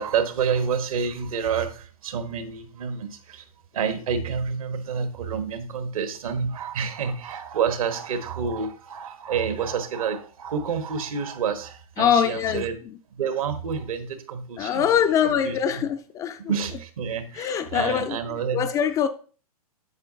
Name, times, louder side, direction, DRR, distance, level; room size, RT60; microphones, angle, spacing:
voice 1, 0.0-3.4 3.7-12.8 13.1-14.8 15.2-15.6 16.5-18.7, right 6 dB, 65° right, 1.3 m, -28 dB
voice 2, 12.0-13.0 14.6-16.5 17.3-19.1, left 8 dB, 15° left, 0.3 m, -24 dB
8.1 x 7.3 x 2.7 m
hypercardioid pair, 120°, 19 cm